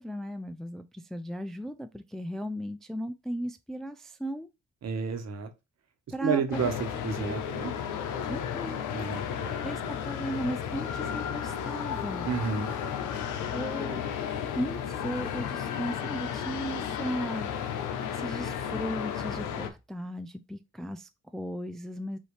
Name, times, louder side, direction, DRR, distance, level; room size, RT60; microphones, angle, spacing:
voice 1, 0.0-4.5 6.1-6.7 8.3-8.8 9.6-12.3 13.5-17.8 18.1-22.2, equal, ahead, 0.4 m, -36 dB
voice 2, 4.8-5.5 6.2-6.7 7.0-7.7 8.9-9.6 12.2-12.7, right 5 dB, 60° right, 1.3 m, -31 dB
sound 1, 6.5-19.7, left 8 dB, 85° left, 0.8 m, -33 dB
5.5 x 2.8 x 3.2 m
cardioid pair, 90°, 30 cm